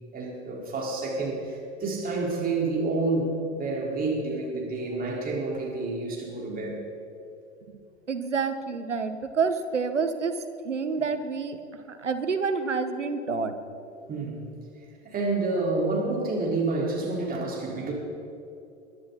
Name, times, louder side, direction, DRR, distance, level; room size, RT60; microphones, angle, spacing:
voice 1, 0.1-6.8 14.1-14.5 15.0-17.9, right 3 dB, 25° right, -3 dB, 4.2 m, -29 dB
voice 2, 8.1-10.3 10.6-11.6 11.9-13.5, right 5 dB, 90° right, 9 dB, 1.1 m, -28 dB
22.0 x 11.0 x 4.1 m, 2.7 s
figure-of-eight pair, 90°, 35 cm